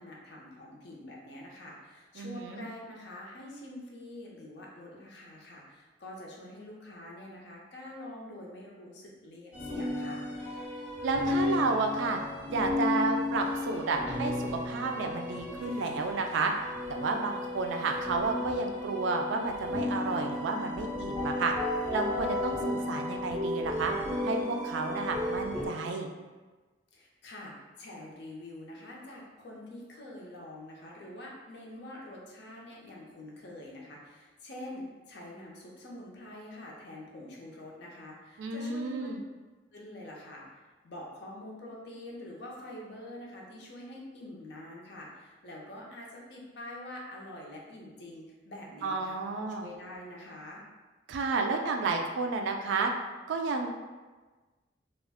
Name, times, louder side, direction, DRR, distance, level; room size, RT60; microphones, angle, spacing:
voice 1, 0.0-10.2 26.9-39.2 39.7-49.1 49.6-50.6, left 1 dB, 60° left, -3 dB, 0.6 m, -46 dB
voice 2, 2.2-2.6 11.0-12.2 12.5-16.5 16.9-21.5 21.9-23.9 24.2-26.1 38.4-39.2 48.8-49.7 51.1-52.9 53.3-53.7, right 3 dB, 70° right, 3 dB, 0.3 m, -31 dB
sound 1, 9.5-25.7, left 2 dB, 10° right, 1.2 m, -34 dB
2.3 x 2.1 x 3.4 m, 1.3 s
head